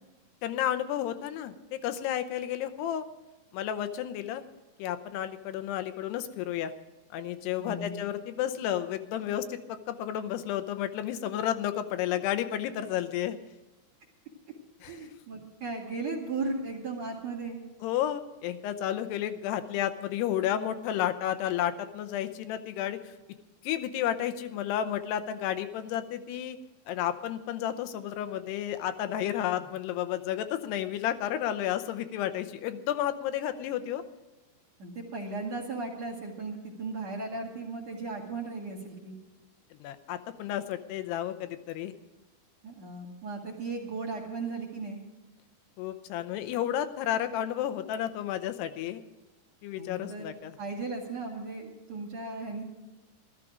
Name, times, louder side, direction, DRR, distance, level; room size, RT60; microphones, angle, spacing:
voice 1, 0.4-3.0 3.5-4.4 4.8-6.7 7.1-13.4 14.8-15.0 17.8-23.1 23.6-26.6 26.9-34.0 39.7-41.9 45.8-49.0 49.6-50.5, left 11 dB, 85° left, 10 dB, 2.9 m, -32 dB
voice 2, 7.6-8.0 14.9-17.6 29.5-29.6 34.8-39.2 42.6-45.0 49.8-50.3 50.6-52.6, right 3 dB, 45° right, 1 dB, 2.9 m, -36 dB
14.0 x 13.5 x 5.1 m, 1.1 s
omnidirectional pair, 4.7 m